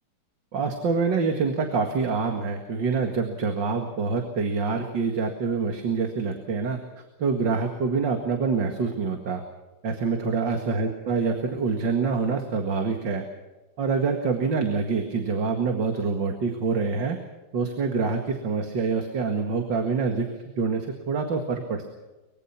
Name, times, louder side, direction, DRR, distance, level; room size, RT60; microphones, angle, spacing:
voice 1, 0.5-9.4 9.8-13.2 13.8-17.2 17.5-21.8, right 4 dB, 60° right, 4 dB, 2.6 m, -26 dB
24.0 x 22.0 x 5.9 m, 1.1 s
omnidirectional pair, 2.2 m